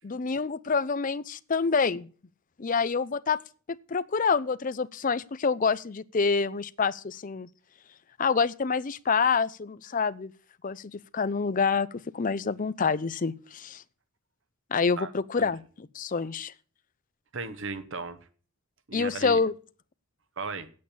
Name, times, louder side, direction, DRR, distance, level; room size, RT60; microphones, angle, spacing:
voice 1, 0.0-2.1 2.6-3.4 3.7-7.5 8.2-10.3 10.6-11.9 12.1-13.8 14.7-16.5 18.9-19.5, left 5 dB, 35° left, 0.5 m, -27 dB
voice 2, 17.3-18.3 18.9-19.4 20.4-20.7, right 4 dB, 60° right, 1.0 m, -36 dB
8.6 x 8.4 x 8.5 m
head